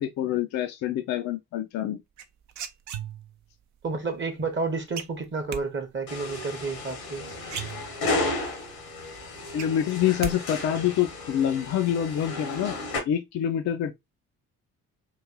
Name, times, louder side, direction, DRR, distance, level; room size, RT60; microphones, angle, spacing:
voice 1, 0.0-2.0 9.5-12.8 13.1-13.9, left 10 dB, 40° left, 0.5 m, -26 dB
sound 1, 2.2-3.5 5.0-5.6 7.1-7.2 7.4-8.3 8.7-8.8 9.1-10.4 10.6-11.1, right 9 dB, 40° right, 0.5 m, -36 dB
voice 2, 3.8-7.3, right 4 dB, 25° right, 0.9 m, -30 dB
sound 2, 6.1-13.0, left 2 dB, 80° left, 1.3 m, -33 dB
3.0 x 2.5 x 3.6 m
figure-of-eight pair, 45°, 44 cm